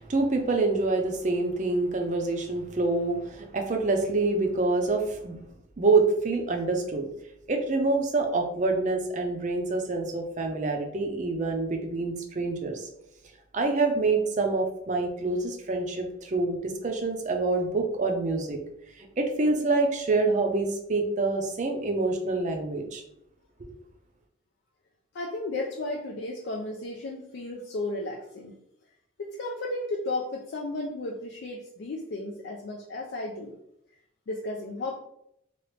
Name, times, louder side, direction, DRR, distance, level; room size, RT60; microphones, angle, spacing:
voice 1, 0.0-5.4 5.8-7.1 7.5-12.9 13.5-18.6 19.2-23.0, right 3 dB, 40° right, 4 dB, 0.4 m, -26 dB
voice 2, 25.1-28.5 29.2-33.6 34.3-35.0, left 2 dB, 65° left, 0 dB, 0.4 m, -34 dB
2.9 x 2.4 x 3.1 m, 0.78 s
head